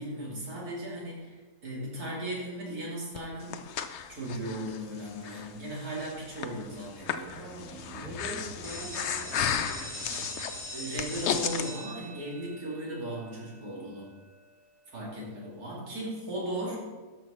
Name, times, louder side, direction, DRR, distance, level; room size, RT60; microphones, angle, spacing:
voice 1, 0.0-3.6 4.1-7.4 10.7-14.1 14.9-16.8, right 1 dB, 70° right, -4 dB, 3.1 m, -37 dB
sound 1, 3.0-3.2 4.0-4.1 6.3-10.6, right 2 dB, 50° right, 1.8 m, -48 dB
Breathing, 3.2-11.7, left 8 dB, 65° left, 0.7 m, -35 dB
voice 2, 7.3-10.3, right 1 dB, 30° right, -6 dB, 3.4 m, -44 dB
sound 2, 8.6-14.3, equal, ahead, 1.5 m, -42 dB
12.0 x 6.2 x 4.3 m, 1.3 s
omnidirectional pair, 1.7 m